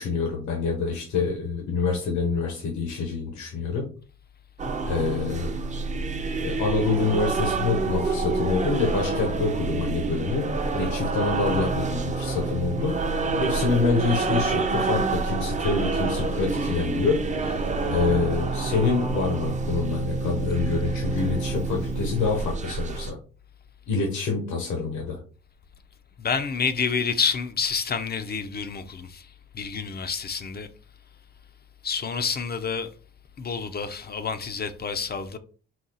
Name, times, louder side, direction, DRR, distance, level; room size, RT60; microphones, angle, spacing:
voice 1, 0.0-3.9 4.9-5.6 6.4-13.0 13.4-17.2 17.9-23.1 23.9-25.2, left 4 dB, 75° left, 1.0 m, -26 dB
sound 1, 4.6-23.1, right 3 dB, 25° right, 0.5 m, -27 dB
voice 2, 26.2-29.3 29.5-30.7 31.8-32.9 33.4-35.4, left 5 dB, 35° left, 0.4 m, -28 dB
4.1 x 2.3 x 3.9 m
cardioid pair, 90°, 30 cm